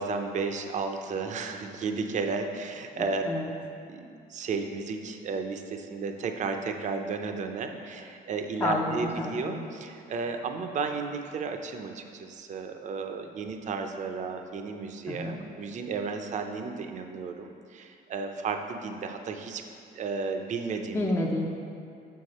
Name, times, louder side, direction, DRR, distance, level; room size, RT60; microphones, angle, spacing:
voice 1, 0.0-3.2 3.9-19.6 19.9-21.1, right 4 dB, 45° right, 5 dB, 0.6 m, -33 dB
voice 2, 3.0-3.5 8.6-9.6 15.1-15.4 20.9-21.5, left 2 dB, 15° left, -1 dB, 0.5 m, -30 dB
6.6 x 5.8 x 4.1 m, 2.5 s
cardioid pair, 110°, 17 cm